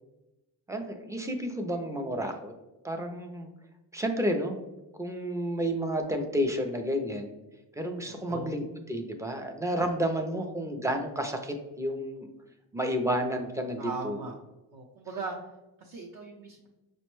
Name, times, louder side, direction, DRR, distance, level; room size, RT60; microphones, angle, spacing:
voice 1, 0.7-2.5 2.8-3.5 3.9-4.6 5.0-7.3 7.8-8.6 8.9-12.3 12.7-14.2, equal, 10° right, 5 dB, 0.3 m, -31 dB
voice 2, 8.0-8.6 10.3-10.5 13.8-14.3 14.7-15.4 15.8-16.7, right 3 dB, 60° right, -1 dB, 0.6 m, -39 dB
5.1 x 2.1 x 3.0 m, 0.99 s
cardioid pair, 115°, 40 cm